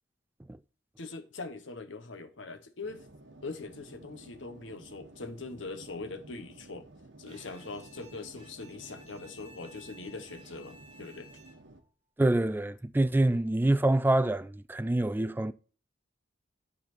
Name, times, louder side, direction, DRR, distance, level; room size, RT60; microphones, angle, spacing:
voice 1, 1.0-3.1 3.4-6.9 7.2-11.3, left 3 dB, 85° left, 1.0 m, -42 dB
sound 1, 2.8-11.8, right 2 dB, 70° right, 1.1 m, -53 dB
Bowed string instrument, 7.3-11.9, equal, 30° right, 2.3 m, -55 dB
voice 2, 12.2-15.5, right 1 dB, 10° right, 0.3 m, -26 dB
10.5 x 4.2 x 4.3 m
head